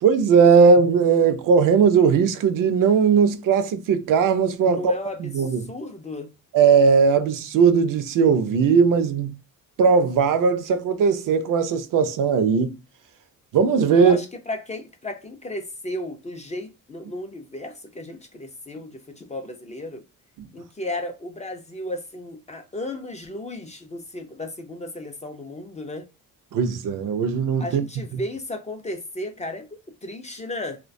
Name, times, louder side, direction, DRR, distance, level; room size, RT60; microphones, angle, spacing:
voice 1, 0.0-4.9 5.2-5.6 6.5-9.3 9.8-12.7 13.5-14.2 26.5-27.8, right 5 dB, 70° right, 0.5 m, -18 dB
voice 2, 4.7-6.3 13.9-20.0 20.5-26.1 27.6-29.6 30.0-30.8, left 1 dB, 20° left, 0.3 m, -34 dB
2.2 x 2.2 x 2.5 m
cardioid pair, 95°, 34 cm